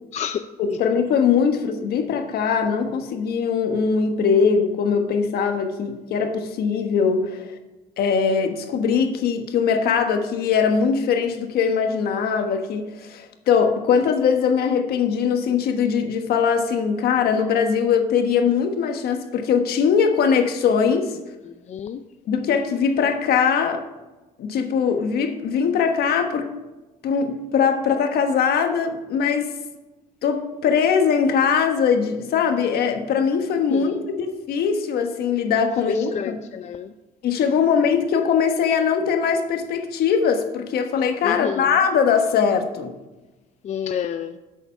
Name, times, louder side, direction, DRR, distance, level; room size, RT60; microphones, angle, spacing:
voice 1, 0.1-0.4 0.7-0.8 21.4-22.0 33.7-34.0 35.9-36.9 41.2-41.8 43.6-44.4, left 8 dB, 45° left, 9 dB, 0.4 m, -29 dB
voice 2, 0.8-7.6 8.0-21.2 22.3-23.8 24.4-26.5 27.0-29.5 30.2-36.4 37.2-42.9, left 6 dB, 70° left, 6 dB, 1.3 m, -21 dB
8.0 x 7.0 x 5.8 m, 1.1 s
cardioid pair, 110°, 17 cm